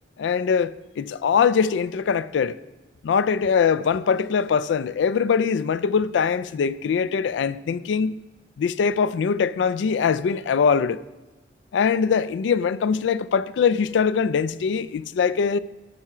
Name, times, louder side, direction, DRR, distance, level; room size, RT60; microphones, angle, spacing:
voice 1, 0.2-2.6 3.0-8.2 8.6-11.0 11.7-15.6, left 6 dB, 80° left, 0.3 m, -22 dB
12.0 x 5.6 x 5.9 m
head